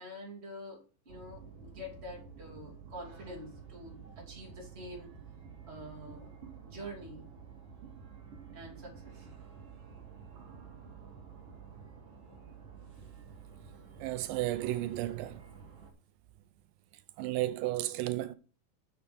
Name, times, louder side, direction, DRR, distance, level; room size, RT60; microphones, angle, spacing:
voice 1, 0.0-5.1 5.7-6.4 6.7-7.3 8.5-9.3 13.0-13.1, equal, 20° right, 2.6 m, -46 dB
sound 1, 1.1-15.9, right 6 dB, 50° right, 2.5 m, -50 dB
voice 2, 14.0-15.4 17.2-18.4, right 15 dB, 90° right, 2.4 m, -33 dB
7.0 x 6.7 x 5.2 m
omnidirectional pair, 3.9 m